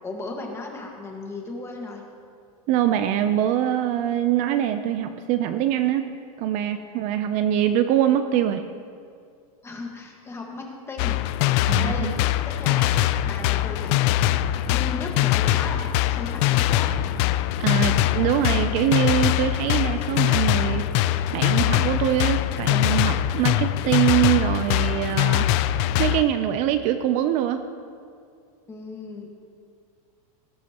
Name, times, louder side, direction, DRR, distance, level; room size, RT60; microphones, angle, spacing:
voice 1, 0.0-2.0 9.6-11.2 11.8-12.1 12.4-13.0 13.2-14.2 14.6-16.9 28.7-29.3, left 3 dB, 15° left, 1 dB, 1.5 m, -36 dB
voice 2, 2.7-6.1 6.4-8.7 11.7-12.2 17.6-27.6, right 11 dB, 40° right, 9 dB, 0.5 m, -24 dB
sound 1, 11.0-26.3, left 13 dB, 50° left, 0.4 m, -22 dB
19.0 x 9.5 x 2.9 m, 2.3 s
supercardioid pair, 145°, 19 cm